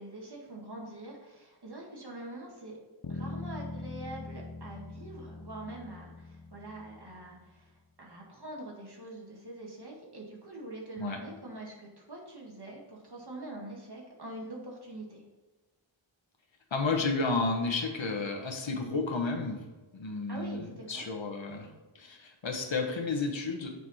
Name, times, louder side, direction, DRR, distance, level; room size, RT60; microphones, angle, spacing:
voice 1, 0.0-2.8 3.1-15.2 20.3-21.1, right 1 dB, 55° right, -1 dB, 1.8 m, -44 dB
sound 1, 3.0-7.4, left 2 dB, 50° left, 0.8 m, -42 dB
voice 2, 16.7-19.6 19.9-23.7, left 3 dB, 65° left, 3 dB, 1.2 m, -32 dB
6.8 x 4.8 x 4.2 m, 1.2 s
wide cardioid pair, 55°, 48 cm